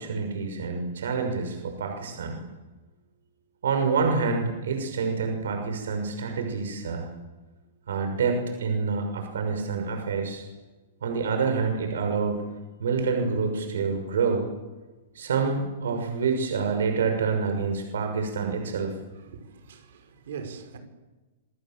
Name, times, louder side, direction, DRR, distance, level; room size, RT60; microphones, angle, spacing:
voice 1, 0.0-2.4 3.6-7.1 7.9-10.4 11.0-12.5 12.8-14.5 15.1-18.9, right 5 dB, 80° right, 6.2 m, -27 dB
voice 2, 19.1-20.8, right 6 dB, 60° right, 5.9 m, -41 dB
27.0 x 26.0 x 7.8 m
hypercardioid pair, 170°, 0 cm